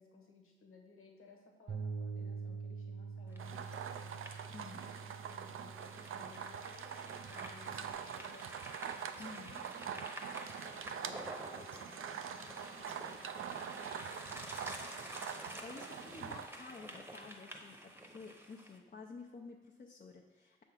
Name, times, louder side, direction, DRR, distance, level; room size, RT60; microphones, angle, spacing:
voice 1, 0.0-4.3 4.8-8.6 9.3-11.2 11.5-13.2 13.7-14.5, left 3 dB, 85° left, 1 dB, 1.2 m, -60 dB
Bass guitar, 1.7-7.9, right 5 dB, 65° right, 1.0 m, -46 dB
sound 1, 3.3-18.8, right 1 dB, 10° right, 0.9 m, -50 dB
sound 2, 3.4-16.5, right 8 dB, 80° right, 0.4 m, -44 dB
voice 2, 4.5-4.9 9.2-9.6 13.9-14.3 15.6-20.6, left 4 dB, 40° left, -1 dB, 0.6 m, -51 dB
6.6 x 3.6 x 5.8 m, 1.2 s
cardioid pair, 70°, 21 cm